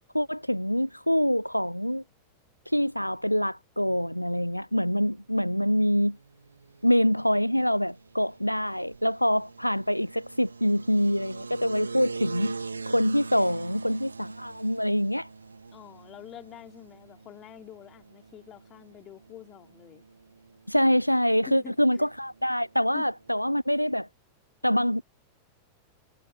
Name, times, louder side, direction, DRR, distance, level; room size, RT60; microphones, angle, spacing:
voice 1, 0.1-2.0 2.7-6.2 6.8-12.6 12.9-15.3 20.7-24.1 24.6-25.0, equal, 90° left, 0.4 m, -25 dB
sound 1, 5.3-23.4, right 4 dB, 80° right, 2.8 m, -44 dB
voice 2, 15.7-20.0 21.5-22.1 22.9-23.1, left 12 dB, 30° left, 3.2 m, -46 dB
figure-of-eight pair, 90°, 0 cm